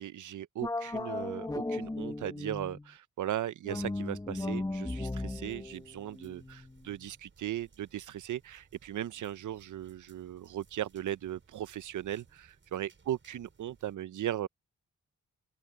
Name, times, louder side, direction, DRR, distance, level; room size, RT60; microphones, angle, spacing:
voice 1, 0.0-14.5, right 12 dB, 65° right, 0.7 m, -38 dB
sound 1, 0.6-2.9 3.6-7.0, left 2 dB, 10° left, 1.5 m, -36 dB
thunderstorm loop, 5.2-14.0, right 5 dB, 35° right, 7.4 m, -63 dB
open air
wide cardioid pair, 135°, 32 cm